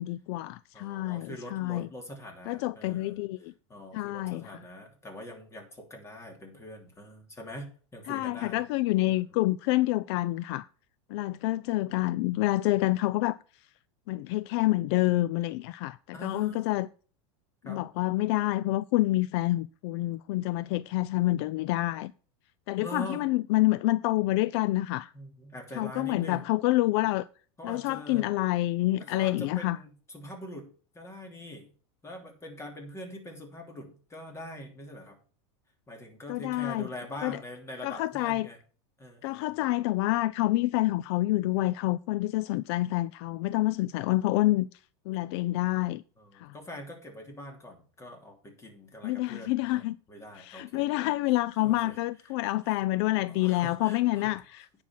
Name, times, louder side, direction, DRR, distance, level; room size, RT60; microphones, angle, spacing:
voice 1, 0.0-1.9 2.5-3.5 3.9-4.6 8.1-10.7 11.1-13.4 14.1-16.0 16.2-16.9 17.7-22.1 22.7-25.1 25.7-27.3 27.6-29.8 36.3-36.9 37.2-37.4 37.8-38.5 39.2-44.7 45.1-46.0 46.3-46.5 49.0-50.0 50.4-54.8, left 17 dB, 60° left, 0.4 m, -27 dB
voice 2, 0.7-8.6 9.1-9.4 16.1-16.6 17.6-17.9 22.8-23.2 25.1-26.5 27.6-28.3 29.0-31.7 32.0-35.2 35.9-38.6 39.0-39.6 46.2-51.1 51.6-52.3 52.7-52.8 53.3-54.4, equal, 15° left, 2.9 m, -44 dB
9.6 x 5.8 x 5.7 m
supercardioid pair, 130°, 16 cm